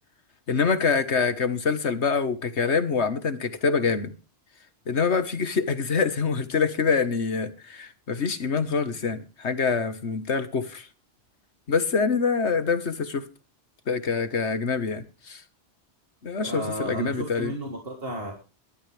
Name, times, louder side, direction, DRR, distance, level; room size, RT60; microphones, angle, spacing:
voice 1, 0.5-4.1 4.9-10.9 11.7-13.3 13.9-15.4 16.2-17.5, left 5 dB, 80° left, 1.8 m, -25 dB
voice 2, 16.4-18.3, right 1 dB, 60° right, 3.5 m, -32 dB
21.5 x 13.0 x 3.5 m
omnidirectional pair, 1.1 m